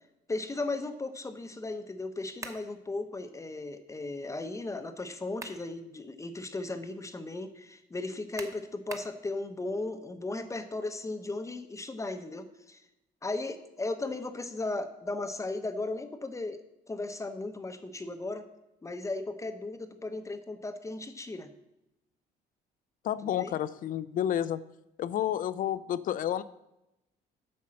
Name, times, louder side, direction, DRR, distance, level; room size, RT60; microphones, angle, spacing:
voice 1, 0.3-12.8 13.2-16.6 16.9-18.5 18.8-21.5 23.4-23.5, left 2 dB, 20° left, 8 dB, 0.8 m, -36 dB
sound 1, 2.4-2.7 5.1-5.7 6.2-6.3 8.4-9.2, right 3 dB, 20° right, 1.0 m, -43 dB
voice 2, 23.0-24.6 25.0-26.4, left 11 dB, 55° left, 15 dB, 0.5 m, -30 dB
8.5 x 5.5 x 7.5 m, 0.89 s
cardioid pair, 110°, 17 cm